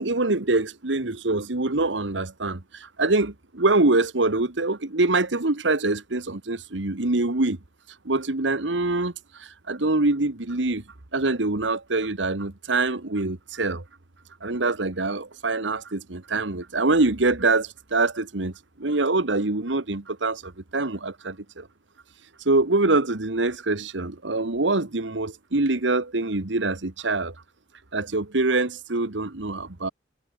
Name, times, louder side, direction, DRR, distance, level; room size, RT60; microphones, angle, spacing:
voice 1, 0.0-7.6 8.0-9.1 9.4-10.8 11.1-13.8 14.4-21.7 22.4-27.3 27.9-29.9, right 2 dB, 85° right, 1.6 m, -24 dB
head